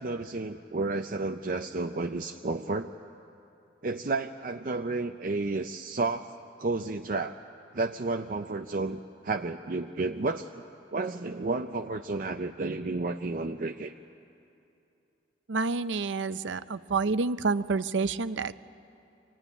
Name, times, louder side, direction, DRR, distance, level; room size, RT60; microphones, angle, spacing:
voice 1, 0.0-2.9 3.8-6.3 6.6-7.3 7.7-10.6 10.9-13.9, right 3 dB, 50° right, 5 dB, 0.5 m, -31 dB
voice 2, 15.5-18.5, right 4 dB, 90° right, 14 dB, 0.6 m, -28 dB
24.5 x 16.5 x 10.0 m, 2.7 s
head